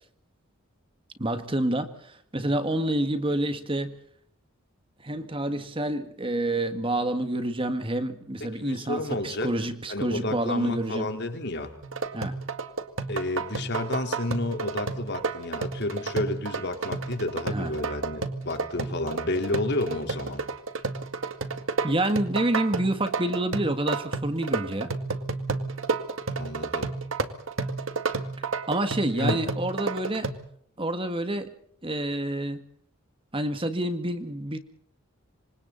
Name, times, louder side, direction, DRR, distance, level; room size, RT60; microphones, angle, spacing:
voice 1, 1.2-3.9 5.0-11.1 12.1-12.3 17.5-17.7 21.8-24.9 28.7-30.3 30.8-31.5 31.8-32.6 33.3-34.6, right 1 dB, 25° right, 9 dB, 1.9 m, -28 dB
voice 2, 8.4-9.5 9.9-11.7 13.1-20.4 26.4-26.9 29.2-29.4, left 2 dB, 55° left, 5 dB, 4.0 m, -31 dB
sound 1, 11.8-30.3, right 4 dB, 65° right, 2.1 m, -31 dB
28.0 x 26.0 x 4.2 m, 0.62 s
head